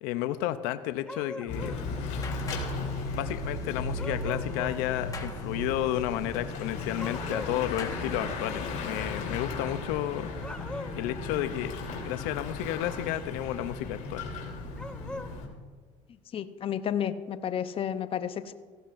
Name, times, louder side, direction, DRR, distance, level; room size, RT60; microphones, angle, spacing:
voice 1, 0.0-1.8 2.7-10.3 11.0-11.7 12.0-14.2, left 13 dB, 85° left, 11 dB, 0.6 m, -32 dB
sound 1, 1.1-1.9 4.0-4.8 7.0-7.6 10.3-11.1 14.8-15.3, left 1 dB, 5° left, 0.8 m, -40 dB
Bicycle / Mechanisms, 1.5-15.5, left 3 dB, 60° left, 3.4 m, -35 dB
sound 2, 1.6-8.9, left 4 dB, 25° left, 1.4 m, -47 dB
voice 2, 16.3-18.5, left 9 dB, 40° left, 11 dB, 0.7 m, -31 dB
17.5 x 15.0 x 2.6 m, 1.5 s
supercardioid pair, 100°, 14 cm